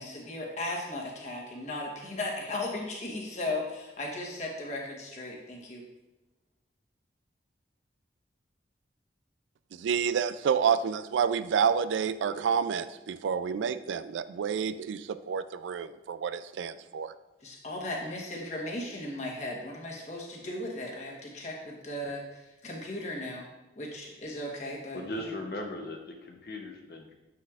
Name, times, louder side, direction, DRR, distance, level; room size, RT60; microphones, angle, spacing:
voice 1, 0.0-5.8 17.4-23.5 23.8-25.0, left 1 dB, 40° left, -1 dB, 1.2 m, -36 dB
voice 2, 9.7-17.1, right 7 dB, 85° right, 14 dB, 0.3 m, -29 dB
voice 3, 24.9-27.1, left 1 dB, 55° left, 2 dB, 0.8 m, -38 dB
7.7 x 5.8 x 2.4 m, 1.0 s
head